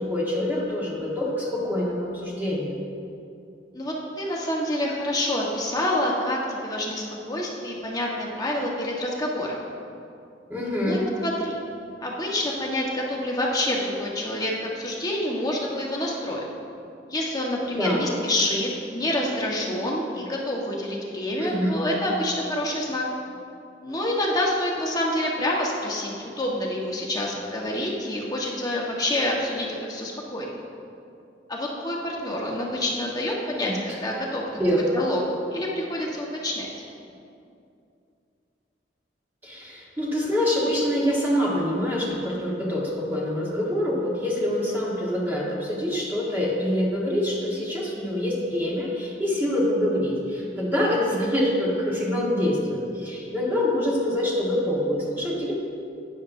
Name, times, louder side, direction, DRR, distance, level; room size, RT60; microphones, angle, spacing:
voice 1, 0.0-2.8 10.5-11.0 17.8-18.1 21.4-21.8 33.6-34.0 34.6-35.0 39.4-55.6, left 1 dB, 10° right, -6 dB, 1.5 m, -25 dB
voice 2, 3.7-9.6 10.7-11.5 12.0-16.4 17.1-23.0 23.8-30.5 31.5-34.4 34.7-36.7, left 1 dB, 20° left, -3 dB, 1.3 m, -27 dB
12.0 x 9.4 x 2.7 m, 2.6 s
head